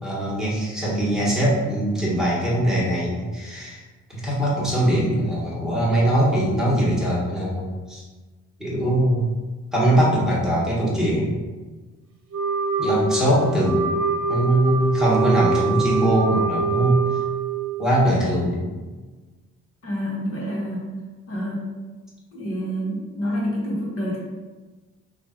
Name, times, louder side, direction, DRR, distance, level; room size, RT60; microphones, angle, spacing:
voice 1, 0.0-3.8 4.1-8.0 8.6-9.3 9.7-11.3 12.8-13.8 14.3-17.0 17.8-18.7, right 1 dB, ahead, -7 dB, 1.4 m, -21 dB
Wind instrument woodwind instrument, 12.3-17.9, right 3 dB, 50° right, 0.9 m, -24 dB
voice 2, 19.8-20.8 21.3-21.6 22.3-24.2, equal, 50° left, -3 dB, 1.3 m, -28 dB
3.1 x 2.5 x 4.3 m, 1.3 s
cardioid pair, 90°, 30 cm